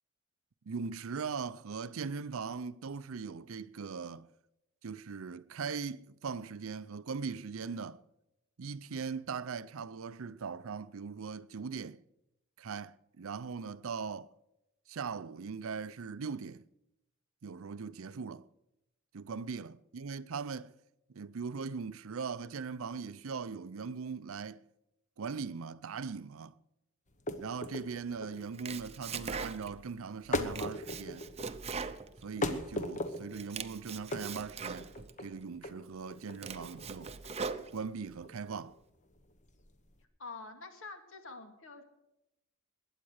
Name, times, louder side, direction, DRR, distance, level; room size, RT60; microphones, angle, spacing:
voice 1, 0.7-4.3 4.8-8.0 8.6-12.0 12.6-14.3 14.9-16.6 17.4-18.5 19.1-20.7 21.1-24.6 25.2-26.5 27.4-31.3 32.2-34.9 35.2-37.2 37.7-38.8, right 5 dB, 70° right, 0.5 m, -40 dB
sound 1, 27.1-40.0, left 1 dB, 35° left, 1.2 m, -39 dB
Domestic sounds home sounds, 28.4-29.9 30.3-32.8 33.2-35.1 35.7-35.8 36.2-38.1, right 5 dB, 30° right, 0.7 m, -41 dB
voice 2, 40.2-41.8, left 3 dB, 65° left, 2.2 m, -46 dB
21.0 x 9.0 x 6.4 m
head